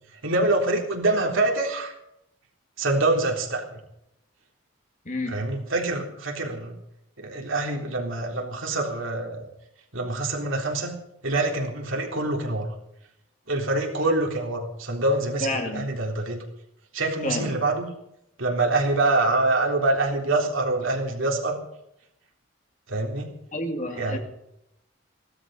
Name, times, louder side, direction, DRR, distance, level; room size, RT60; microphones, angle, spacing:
voice 1, 0.2-1.9 2.8-3.8 5.3-6.7 7.2-9.5 9.9-11.0 11.2-12.7 13.5-16.4 16.9-17.9 18.4-21.6 22.9-23.3 24.0-24.2, right 2 dB, 70° right, 1 dB, 3.7 m, -25 dB
voice 2, 5.0-5.4 15.4-16.0 17.2-17.5 23.5-24.2, left 1 dB, 40° left, 4 dB, 2.2 m, -30 dB
17.5 x 13.0 x 5.6 m, 0.80 s
head